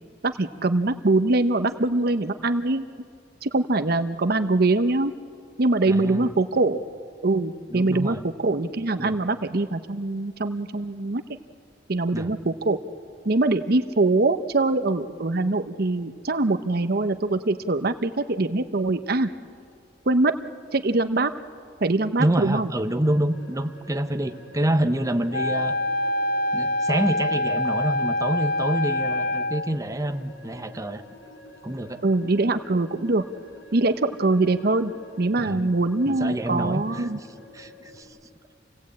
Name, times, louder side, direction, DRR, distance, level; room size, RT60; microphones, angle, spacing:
voice 1, 0.2-2.9 3.4-5.1 5.6-6.8 7.2-11.2 11.9-12.8 13.2-19.3 20.1-20.3 20.7-21.3 21.8-22.7 32.0-33.2 33.7-34.9 35.2-37.2, right 2 dB, 55° right, 10 dB, 0.8 m, -23 dB
voice 2, 5.9-6.3 7.7-8.2 9.0-9.2 12.1-12.3 22.2-25.8 26.5-31.0 31.6-32.0 35.4-35.7 36.1-37.3 37.5-38.1, right 1 dB, 20° right, 7 dB, 0.8 m, -27 dB
sound 1, 23.0-38.0, left 2 dB, 70° left, 4.2 m, -47 dB
Wind instrument woodwind instrument, 25.3-29.7, left 1 dB, 55° left, 0.6 m, -25 dB
28.0 x 17.5 x 8.5 m, 2.2 s
head